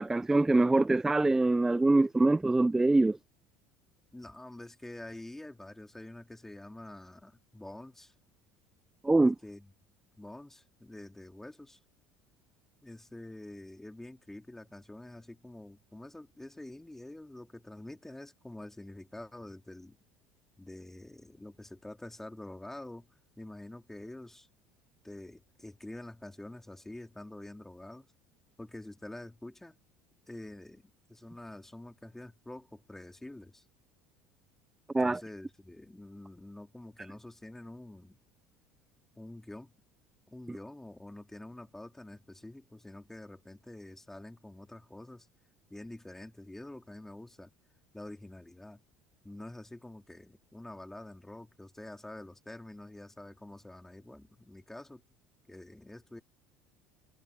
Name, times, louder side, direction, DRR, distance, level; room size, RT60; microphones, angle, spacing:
voice 1, 0.0-3.2 9.0-9.4 34.9-35.2, right 2 dB, 10° right, 0.5 m, -24 dB
voice 2, 4.1-8.1 9.4-9.7 10.2-11.8 12.8-20.0 20.6-23.1 23.4-24.5 25.0-28.1 28.6-29.7 30.3-33.6 35.0-38.2 39.2-39.7 40.3-45.3 45.7-47.5 47.9-48.8 49.2-55.0 55.5-56.2, left 1 dB, 10° left, 3.2 m, -47 dB
hypercardioid pair, 70°, 5 cm